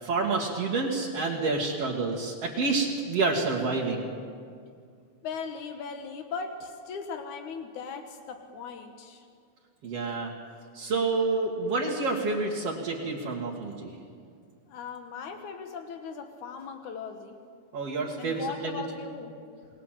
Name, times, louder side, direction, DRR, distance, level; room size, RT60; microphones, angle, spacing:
voice 1, 0.0-4.1 9.8-10.3 10.7-13.9 17.7-18.8, right 3 dB, 55° right, -3 dB, 3.2 m, -28 dB
voice 2, 5.2-9.3 14.7-17.4 18.2-19.4, left 5 dB, 85° left, 5 dB, 2.8 m, -38 dB
29.5 x 20.0 x 7.6 m, 2.2 s
omnidirectional pair, 3.3 m